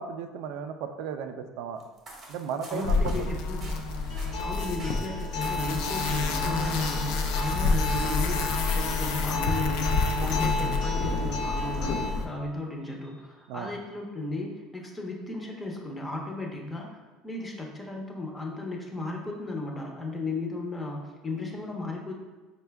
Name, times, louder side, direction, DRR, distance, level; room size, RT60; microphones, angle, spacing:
voice 1, 0.0-1.8 2.3-3.3 13.5-13.7, right 7 dB, 75° right, 7 dB, 0.3 m, -35 dB
sound 1, 1.8-8.4, right 2 dB, 30° right, 0.8 m, -48 dB
voice 2, 2.7-3.8 4.4-22.1, left 2 dB, 15° left, 0 dB, 0.6 m, -35 dB
sound 2, 2.8-12.3, left 4 dB, 80° left, 0.4 m, -28 dB
Acoustic guitar, 4.1-12.1, left 1 dB, 60° left, 0.9 m, -34 dB
4.3 x 2.2 x 3.3 m, 1.3 s
cardioid pair, 140°, 0 cm